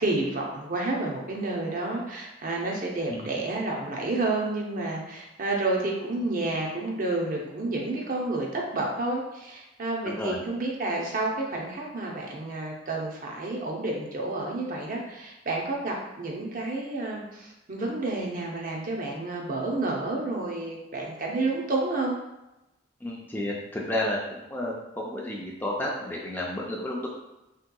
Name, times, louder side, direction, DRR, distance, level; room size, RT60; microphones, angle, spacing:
voice 1, 0.0-22.1, right 2 dB, 45° right, -1 dB, 0.6 m, -30 dB
voice 2, 10.1-10.4 23.0-24.2 24.5-27.1, left 1 dB, 10° left, -3 dB, 0.4 m, -31 dB
3.4 x 2.8 x 2.2 m, 0.95 s
head